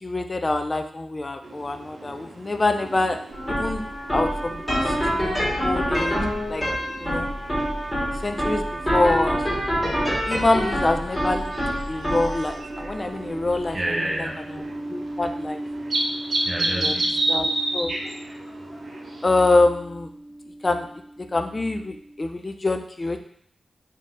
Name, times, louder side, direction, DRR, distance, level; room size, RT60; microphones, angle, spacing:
voice 1, 0.0-3.2 3.5-3.8 4.1-6.2 6.5-6.6 7.0-7.3 8.2-9.4 10.3-11.5 11.9-13.8 14.2-14.6 14.9-15.6 16.8-16.9 17.3-17.9 18.7-18.8 19.2-20.1 20.6-20.9 21.2-23.2, left 2 dB, 35° left, 7 dB, 0.3 m, -25 dB
sound 1, 1.4-19.5, right 2 dB, 70° right, 0.6 m, -33 dB
sound 2, 3.3-20.5, equal, 10° left, 1.6 m, -28 dB
voice 2, 13.7-14.8 16.4-17.4, right 1 dB, 30° right, -2 dB, 0.9 m, -30 dB
3.7 x 2.7 x 3.7 m, 0.66 s
wide cardioid pair, 80°, 0 cm